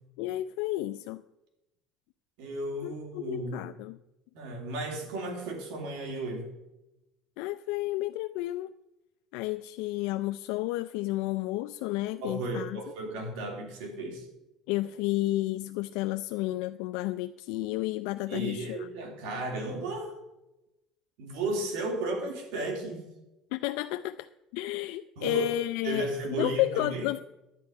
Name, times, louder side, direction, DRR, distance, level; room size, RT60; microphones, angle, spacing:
voice 1, 0.2-1.2 2.8-4.0 7.4-8.7 9.3-12.8 14.7-18.9 23.5-24.3 24.5-26.1 26.4-27.2, left 17 dB, 85° left, 10 dB, 0.3 m, -31 dB
voice 2, 2.4-3.7 4.3-6.5 12.2-14.3 18.3-20.1 21.2-23.0 25.2-25.5 25.8-27.0, right 2 dB, 85° right, 2 dB, 3.0 m, -34 dB
10.5 x 9.3 x 5.3 m, 0.96 s
cardioid pair, 140°, 0 cm